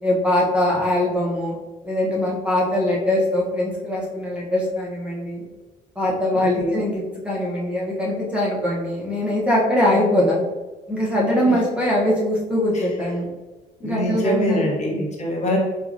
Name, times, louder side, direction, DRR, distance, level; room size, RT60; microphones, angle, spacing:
voice 1, 0.0-1.6 1.8-5.4 6.0-10.4 10.9-13.3 13.8-14.7, left 1 dB, 5° right, -5 dB, 0.8 m, -22 dB
voice 2, 6.3-6.8 9.9-10.4 11.5-11.6 12.7-12.9 13.8-15.6, equal, 45° left, -2 dB, 1.0 m, -25 dB
4.6 x 2.3 x 2.6 m, 1.2 s
cardioid pair, 110°, 17 cm